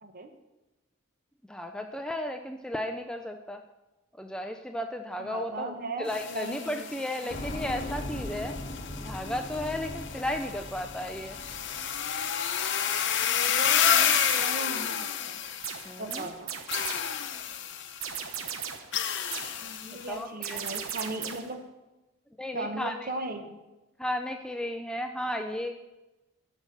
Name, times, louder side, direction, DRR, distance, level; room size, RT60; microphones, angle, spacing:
voice 1, 0.0-0.3 5.2-6.9 7.2-7.3 13.2-15.4 16.0-16.5 19.6-21.6 22.5-23.6, right 2 dB, 45° right, 6 dB, 1.1 m, -37 dB
voice 2, 1.5-3.6 4.2-8.6 9.0-11.4 15.9-16.3 20.1-20.8 22.4-23.1 24.0-25.9, left 1 dB, 5° left, 5 dB, 0.3 m, -34 dB
sound 1, 6.0-16.1 16.7-18.1 18.9-20.1, left 8 dB, 55° left, 0.8 m, -30 dB
sound 2, 7.3-12.3, left 1 dB, 30° left, 1.0 m, -39 dB
sound 3, 14.1-14.7 15.6-17.2 18.0-19.0 19.3-19.7 20.4-21.6, right 7 dB, 80° right, 1.0 m, -37 dB
11.0 x 5.3 x 6.5 m, 1.0 s
head